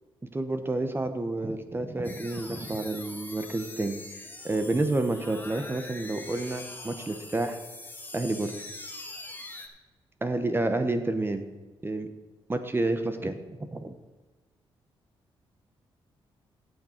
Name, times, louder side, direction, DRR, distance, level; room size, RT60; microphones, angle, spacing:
voice 1, 0.3-7.6 8.1-8.6 10.2-11.5 11.8-12.1 12.5-13.9, right 2 dB, 25° right, 8 dB, 0.9 m, -29 dB
sound 1, 2.0-9.7, left 2 dB, 20° left, 1.5 m, -43 dB
16.0 x 6.2 x 4.4 m, 1.3 s
cardioid pair, 70°, 10 cm